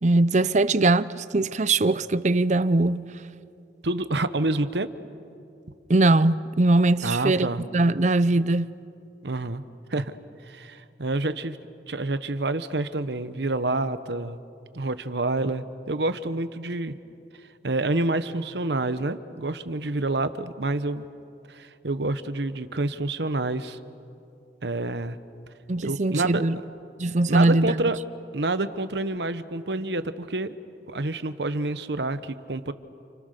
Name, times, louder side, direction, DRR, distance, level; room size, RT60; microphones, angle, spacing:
voice 1, 0.0-3.1 5.9-8.7 25.7-26.6 27.0-27.8, right 2 dB, 40° right, 0.6 m, -21 dB
voice 2, 3.8-4.9 7.0-7.6 9.2-9.6 9.9-10.2 10.4-11.6 11.9-14.4 14.7-16.9 17.6-21.1 21.5-23.8 24.6-25.2 25.8-26.4 27.3-28.0 28.3-30.6 30.9-32.7, right 2 dB, 75° right, 1.1 m, -28 dB
29.5 x 29.0 x 6.7 m
head